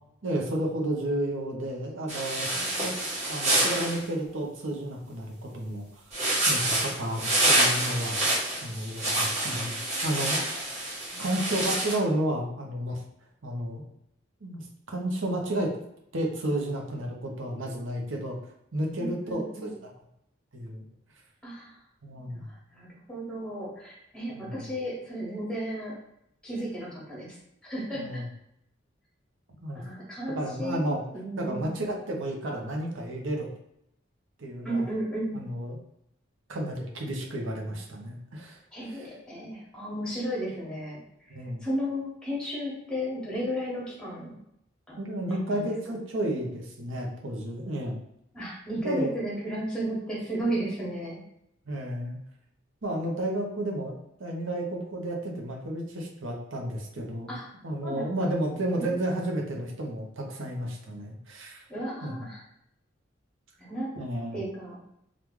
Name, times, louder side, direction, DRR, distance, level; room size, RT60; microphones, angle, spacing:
voice 1, 0.2-2.5 2.8-2.9 3.2-6.0 6.5-8.3 8.6-9.8 10.0-10.4 11.2-13.0 13.4-13.8 14.4-15.7 16.1-18.4 18.7-19.8 20.5-20.8 22.0-22.5 24.3-24.7 27.9-28.3 29.6-29.8 30.3-31.0 31.4-33.5 34.4-34.9 35.3-35.8 36.5-38.6 38.9-39.1 41.3-41.6 45.0-48.0 48.8-49.1 51.7-52.2 52.8-57.3 57.6-61.6 62.0-62.2 64.0-64.4, right 1 dB, 90° right, 0 dB, 0.8 m, -32 dB
sound 1, 2.1-4.0 6.1-11.9, right 1 dB, 35° right, 1.1 m, -27 dB
voice 2, 9.5-10.0 11.1-11.2 19.0-19.7 21.4-21.7 22.1-25.9 26.4-27.4 27.6-28.2 29.7-31.8 34.6-35.4 38.7-41.0 41.6-44.4 44.9-45.0 45.5-45.7 48.3-51.2 57.3-57.5 57.8-59.0 61.7-62.4 63.6-64.0 64.3-64.8, equal, 5° left, -5 dB, 1.1 m, -34 dB
3.0 x 2.4 x 3.6 m, 0.78 s
head